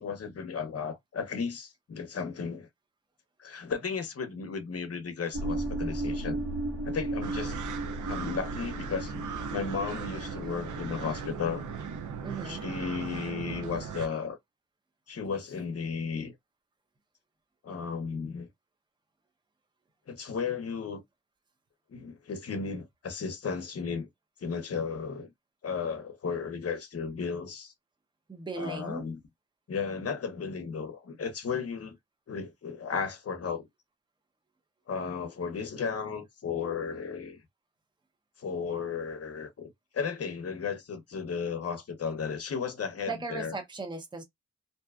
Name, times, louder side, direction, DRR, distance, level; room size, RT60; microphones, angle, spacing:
voice 1, 0.0-2.7 3.4-6.4 6.8-7.6 8.1-11.7 12.4-14.4 15.1-16.3 17.6-18.5 20.1-21.0 21.9-24.1 24.4-25.3 25.6-27.7 28.5-29.2 29.7-32.0 32.3-33.7 34.9-37.4 38.4-43.5, left 5 dB, 55° left, 0.7 m, -34 dB
sound 1, 5.3-12.9, right 2 dB, 50° right, 1.3 m, -36 dB
sound 2, 7.2-14.1, right 7 dB, 90° right, 0.5 m, -38 dB
voice 2, 12.2-12.6 28.3-29.0 43.1-44.2, right 3 dB, 15° right, 0.6 m, -37 dB
2.6 x 2.3 x 2.3 m
wide cardioid pair, 110°, 29 cm